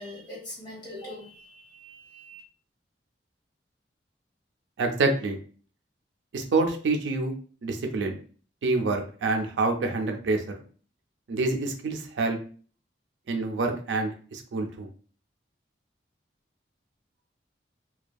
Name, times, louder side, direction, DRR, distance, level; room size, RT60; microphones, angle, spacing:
voice 1, 0.0-2.4, left 1 dB, 25° left, -6 dB, 1.4 m, -42 dB
voice 2, 4.8-5.4 6.3-7.3 7.6-8.2 8.6-10.4 11.3-12.4 13.3-14.9, right 3 dB, 90° right, 4 dB, 0.4 m, -27 dB
2.6 x 2.2 x 2.3 m, 0.42 s
head